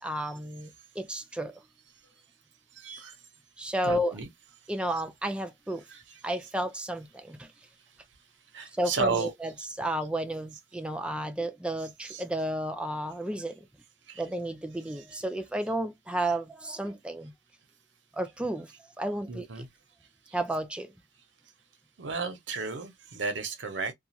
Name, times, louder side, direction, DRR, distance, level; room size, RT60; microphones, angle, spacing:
voice 1, 0.0-1.6 3.6-4.1 4.7-5.8 6.2-7.5 8.8-9.5 9.8-13.7 14.2-17.3 18.1-18.7 19.0-19.6 20.3-20.9, right 1 dB, 5° right, 0.3 m, -32 dB
voice 2, 2.7-3.1 3.8-4.3 5.9-6.0 8.5-9.3 12.0-12.2 14.1-14.2 15.0-15.1 19.3-19.7 20.3-20.4 22.0-23.9, right 4 dB, 90° right, 0.8 m, -33 dB
2.4 x 2.3 x 2.8 m
head